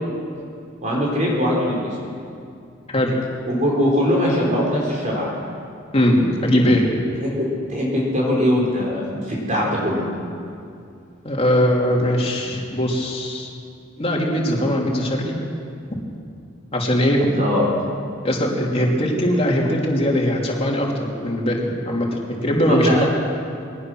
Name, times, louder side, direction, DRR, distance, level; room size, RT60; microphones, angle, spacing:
voice 1, 0.8-2.0 3.5-5.3 7.2-10.0 17.3-17.6 22.7-23.1, equal, 40° right, -4 dB, 4.3 m, -21 dB
voice 2, 5.9-6.9 11.2-13.5 14.0-15.3 16.7-17.3 18.2-23.0, equal, 30° left, -2 dB, 3.2 m, -20 dB
22.0 x 18.5 x 6.3 m, 2.4 s
head